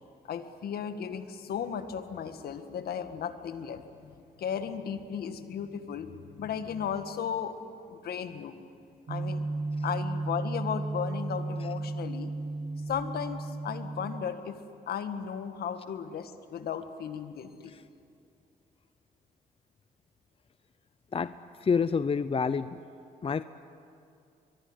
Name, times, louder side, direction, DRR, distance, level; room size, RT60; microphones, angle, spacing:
voice 1, 0.3-7.5 7.9-8.6 9.1-9.5 9.8-12.3 12.9-14.6 14.9-17.7, left 8 dB, 70° left, 9 dB, 1.9 m, -35 dB
sound 1, 9.1-14.2, right 2 dB, 45° right, 1.4 m, -34 dB
voice 2, 21.6-22.8 23.2-23.4, left 5 dB, 35° left, 13 dB, 0.7 m, -28 dB
24.0 x 22.0 x 9.7 m, 2.5 s
supercardioid pair, 60°, 17 cm